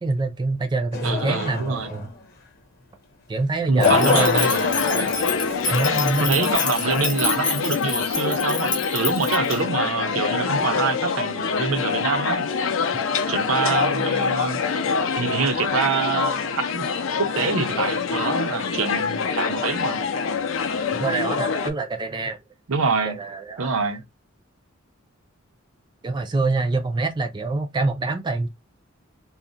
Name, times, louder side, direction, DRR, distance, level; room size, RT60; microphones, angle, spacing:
voice 1, 0.0-2.1 3.3-4.5 5.7-6.4 21.0-22.4 23.0-23.7 26.0-28.5, right 3 dB, 20° right, 0.4 m, -25 dB
sound 1, 0.9-2.1 3.8-6.3, left 4 dB, 50° left, 0.8 m, -26 dB
voice 2, 1.0-2.0 3.7-5.1 6.2-12.4 13.3-14.6 15.2-16.9 17.2-20.0 22.7-23.2 23.6-24.1, right 4 dB, 80° right, 0.6 m, -25 dB
sound 2, 3.8-21.7, left 5 dB, 70° left, 0.4 m, -25 dB
sound 3, 3.8-9.6, left 4 dB, 20° left, 0.6 m, -28 dB
2.4 x 2.0 x 3.8 m
head